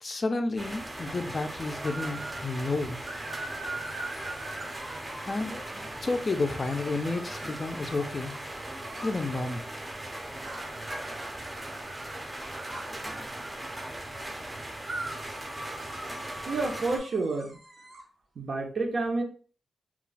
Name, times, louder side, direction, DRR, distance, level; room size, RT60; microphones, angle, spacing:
voice 1, 0.0-3.0 5.2-8.3 9.0-9.7, left 3 dB, 35° left, 6 dB, 0.4 m, -31 dB
sound 1, 0.6-17.0, right 1 dB, 20° right, 0.5 m, -39 dB
sound 2, 1.8-2.5 3.0-5.8 6.6-9.2 10.4-13.9 14.8-18.0, right 2 dB, 85° right, 1.2 m, -42 dB
voice 2, 16.4-17.6 18.4-19.2, right 3 dB, 70° right, 3 dB, 0.7 m, -29 dB
2.3 x 2.1 x 3.9 m, 0.39 s
wide cardioid pair, 135°, 0 cm